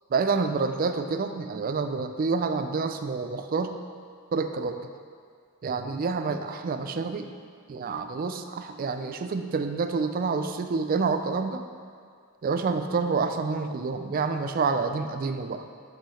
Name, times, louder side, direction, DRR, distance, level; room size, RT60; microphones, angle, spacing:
voice 1, 0.1-3.8 4.3-4.9 5.6-7.3 7.7-11.6 12.4-15.7, right 4 dB, 40° right, 8 dB, 0.3 m, -28 dB
5.9 x 5.6 x 4.1 m, 2.1 s
head